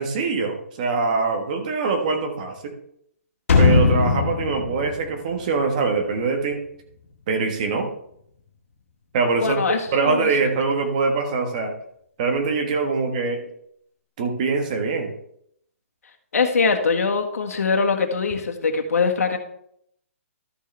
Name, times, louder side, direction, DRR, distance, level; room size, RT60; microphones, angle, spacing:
voice 1, 0.0-2.7 3.6-6.6 7.3-7.9 9.1-11.7 12.2-13.4 14.2-15.1, right 4 dB, 30° right, 4 dB, 1.3 m, -23 dB
sound 1, 3.5-6.3 6.6-6.7, left 4 dB, 65° left, 2.1 m, -20 dB
voice 2, 9.4-10.3 16.3-19.4, left 4 dB, 85° left, 3 dB, 1.7 m, -22 dB
13.0 x 6.5 x 3.3 m, 0.70 s
hypercardioid pair, 170°, 8 cm